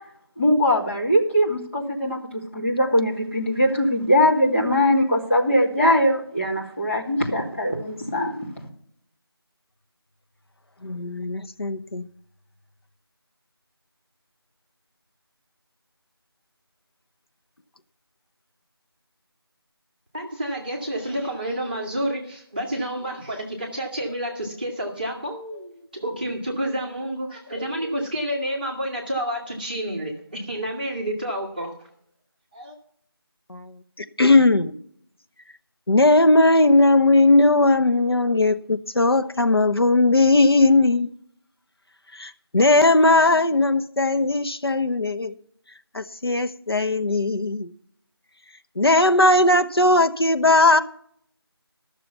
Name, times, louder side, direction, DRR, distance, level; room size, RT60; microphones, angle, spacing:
voice 1, 0.4-2.2 2.5-8.4, equal, 30° left, -3 dB, 2.5 m, -21 dB
voice 2, 10.8-12.1 33.5-34.7 35.9-41.1 42.1-45.3 45.9-47.7 48.8-50.8, left 2 dB, 70° left, 8 dB, 1.0 m, -18 dB
voice 3, 20.1-31.7 32.5-32.8, right 1 dB, 20° right, -3 dB, 1.7 m, -29 dB
13.5 x 6.8 x 6.9 m, 0.65 s
figure-of-eight pair, 175°, 13 cm